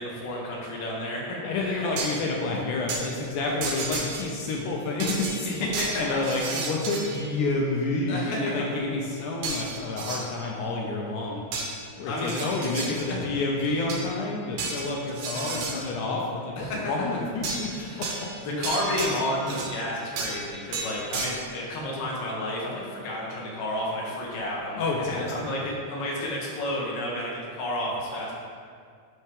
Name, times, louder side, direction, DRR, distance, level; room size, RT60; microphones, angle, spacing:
voice 1, 0.0-1.9 5.5-6.2 8.1-8.7 12.1-12.4 13.0-13.2 14.8-14.9 15.3-15.6 16.6-16.9 17.7-18.1 18.4-28.3, left 1 dB, 55° left, -3 dB, 1.9 m, -31 dB
voice 2, 1.4-5.5 6.0-11.4 12.0-17.7 18.0-18.3 24.8-25.7, left 3 dB, 80° left, -1 dB, 2.1 m, -29 dB
sound 1, 2.0-2.3 2.9-3.0 3.6-4.6 5.0-7.3 9.4-10.3 11.5-11.8 12.2-13.1 13.6-14.1 14.6-15.8 17.4-17.7 18.0-19.8 20.2-20.4 20.7-21.3, right 4 dB, 75° right, 2.3 m, -32 dB
7.5 x 5.6 x 3.4 m, 2.2 s
omnidirectional pair, 3.6 m